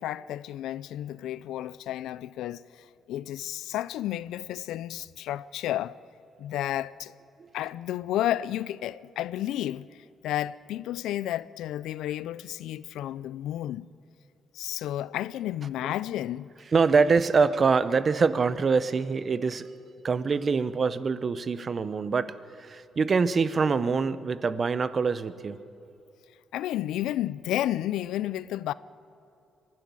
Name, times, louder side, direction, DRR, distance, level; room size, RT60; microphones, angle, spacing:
voice 1, 0.0-6.0 6.4-7.1 7.5-9.9 10.2-13.9 14.5-16.5 26.5-28.7, left 13 dB, 85° left, 0.4 m, -32 dB
voice 2, 16.7-19.7 20.0-22.3 22.6-25.6, right 5 dB, 40° right, 0.8 m, -24 dB
23.0 x 12.0 x 9.6 m
cardioid pair, 90°, 0 cm